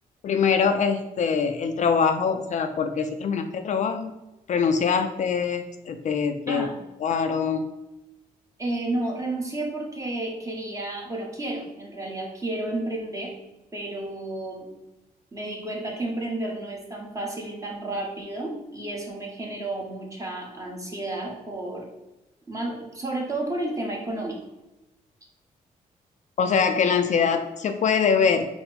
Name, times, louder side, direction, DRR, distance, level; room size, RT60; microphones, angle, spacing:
voice 1, 0.2-4.2 4.5-6.7 7.0-7.7 26.4-28.5, left 6 dB, 55° left, 7 dB, 0.4 m, -23 dB
voice 2, 6.5-6.8 8.6-13.3 13.7-14.7 15.3-21.9 22.5-24.4, right 2 dB, 20° right, -1 dB, 1.1 m, -31 dB
4.2 x 2.0 x 4.1 m, 1.0 s
cardioid pair, 80°, 15 cm